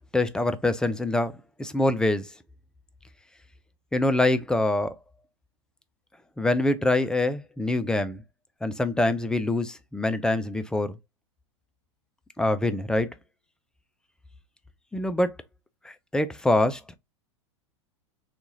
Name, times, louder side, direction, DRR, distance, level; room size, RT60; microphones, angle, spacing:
voice 1, 0.1-2.3 3.9-5.0 6.4-8.2 8.6-10.9 12.4-13.1 14.9-15.3 15.8-16.8, left 2 dB, 5° left, 0.3 m, -25 dB
2.9 x 2.4 x 3.9 m
hypercardioid pair, 100°, 16 cm